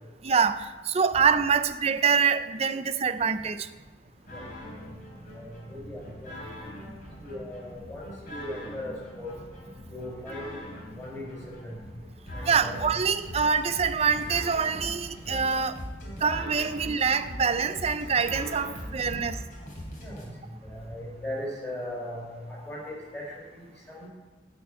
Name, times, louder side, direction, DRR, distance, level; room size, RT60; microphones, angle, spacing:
voice 1, 0.2-3.7 12.5-15.8 16.2-19.4, right 6 dB, 35° right, 11 dB, 0.5 m, -25 dB
sound 1, 4.3-20.2, equal, 45° left, 3.3 m, -41 dB
voice 2, 5.3-6.4 7.2-9.3 9.9-10.6 10.9-11.8 12.3-12.8 20.0-20.3 20.6-24.1, left 1 dB, 15° left, -5 dB, 4.3 m, -38 dB
12.5 x 5.3 x 8.8 m, 1.4 s
head